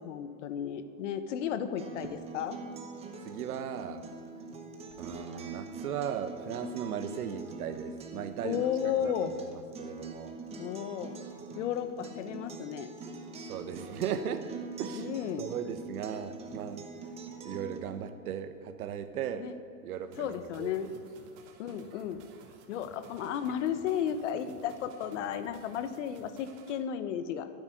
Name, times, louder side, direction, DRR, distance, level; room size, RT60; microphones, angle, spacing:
voice 1, 0.0-2.6 8.4-9.4 10.6-11.2 11.6-12.9 14.9-15.5 19.4-19.5 20.2-20.9 21.6-22.2 22.7-27.5, left 9 dB, 50° left, 12 dB, 1.0 m, -34 dB
Acoustic guitar, 1.8-17.8, right 3 dB, 15° right, 0.9 m, -44 dB
voice 2, 3.2-4.1 5.0-8.7 9.0-9.3 9.8-10.4 13.5-14.5 14.8-15.1 15.4-16.8 17.4-19.5 19.8-20.7, right 8 dB, 70° right, 9 dB, 1.2 m, -37 dB
sound 1, 20.1-26.8, right 5 dB, 50° right, 1.8 m, -56 dB
9.4 x 8.5 x 9.6 m, 2.3 s
hypercardioid pair, 145°, 45 cm